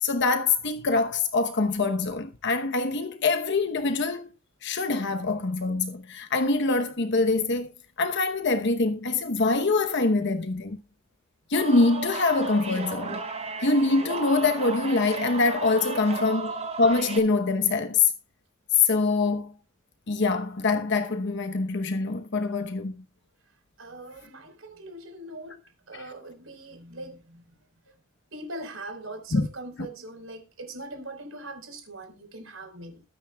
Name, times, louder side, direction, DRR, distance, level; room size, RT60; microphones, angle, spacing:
voice 1, 0.0-4.3 4.6-7.7 8.0-10.8 11.5-13.2 13.6-18.1 18.7-19.5 20.1-23.0 25.9-26.0 29.3-29.5, left 3 dB, 60° left, 0.9 m, -24 dB
sound 1, 11.5-17.2, right 3 dB, 30° right, 5.1 m, -34 dB
voice 2, 15.9-16.3 23.8-25.6 25.9-27.4 28.3-33.0, right 2 dB, 70° right, 4.4 m, -41 dB
21.5 x 9.3 x 2.3 m
head